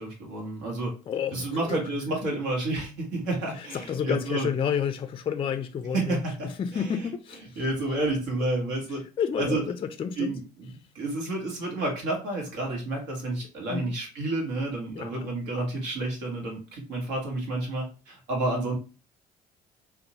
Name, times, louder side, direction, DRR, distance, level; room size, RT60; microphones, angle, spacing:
voice 1, 0.0-0.9 1.3-4.5 5.9-6.9 7.6-9.0 9.4-9.6 10.2-18.8, right 2 dB, 75° right, 1.1 m, -30 dB
voice 2, 1.1-1.8 3.6-7.6 9.2-10.3 13.7-13.9 15.0-15.3, left 7 dB, 30° left, 0.3 m, -30 dB
2.7 x 2.0 x 2.7 m
hypercardioid pair, 55°, 19 cm